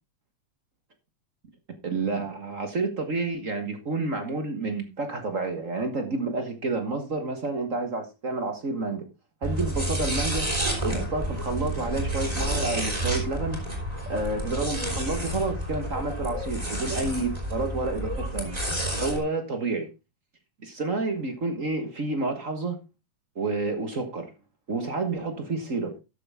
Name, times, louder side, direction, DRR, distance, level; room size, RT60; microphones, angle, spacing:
voice 1, 1.8-9.0 9.4-10.4 10.8-13.6 14.1-18.5 18.9-19.9 20.6-22.8 23.3-24.3 24.7-25.9, right 3 dB, 40° right, 1.2 m, -29 dB
sound 1, 9.4-19.2, right 1 dB, 10° right, 3.6 m, -30 dB
13.0 x 7.7 x 3.6 m
omnidirectional pair, 3.3 m